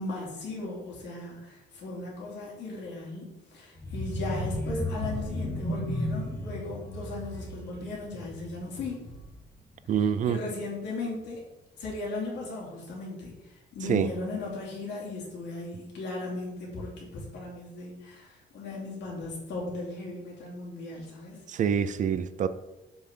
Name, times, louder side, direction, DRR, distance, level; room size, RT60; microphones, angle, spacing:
voice 1, 0.0-9.0 10.0-11.4 11.8-21.4, left 2 dB, 75° left, -4 dB, 2.9 m, -37 dB
sound 1, 3.8-9.5 9.9-10.2 10.5-10.6, left 1 dB, 15° left, 1.2 m, -34 dB
voice 2, 9.9-10.4 13.9-14.1 21.5-22.5, right 8 dB, 45° right, 13 dB, 0.4 m, -26 dB
7.3 x 5.9 x 3.8 m, 1.0 s
cardioid pair, 160°, 18 cm